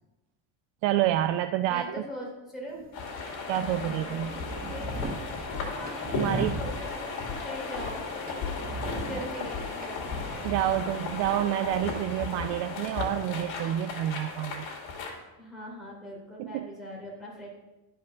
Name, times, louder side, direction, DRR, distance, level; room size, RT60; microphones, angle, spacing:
voice 1, 0.8-1.8 3.5-4.3 6.1-6.6 10.4-14.7 16.4-16.7, right 12 dB, 70° right, 10 dB, 0.5 m, -28 dB
voice 2, 1.7-2.8 4.6-5.0 5.5-7.1 7.4-8.1 9.0-10.0 15.4-17.5, equal, ahead, -5 dB, 3.0 m, -41 dB
sound 1, 2.7-13.8, right 2 dB, 20° right, 0.7 m, -40 dB
sound 2, 2.9-15.2, left 4 dB, 65° left, 2.5 m, -35 dB
11.0 x 5.4 x 5.7 m, 1.0 s
cardioid pair, 165°, 47 cm